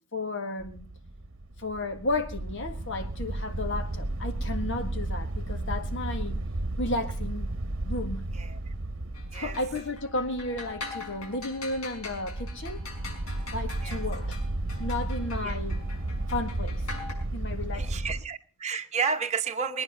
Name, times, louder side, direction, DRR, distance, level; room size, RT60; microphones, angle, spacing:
voice 1, 0.1-0.9 1.6-6.4 6.8-7.5 7.8-8.2 9.3-12.8 13.5-14.4 14.8-15.8 16.3-16.8 17.3-18.0, left 2 dB, 60° left, 1.7 m, -33 dB
sound 1, 0.6-18.2, right 2 dB, 65° right, 1.0 m, -33 dB
sound 2, 9.1-17.1, left 3 dB, 90° left, 5.5 m, -43 dB
voice 2, 17.7-19.8, right 5 dB, 30° right, 1.0 m, -31 dB
22.0 x 9.7 x 5.3 m
head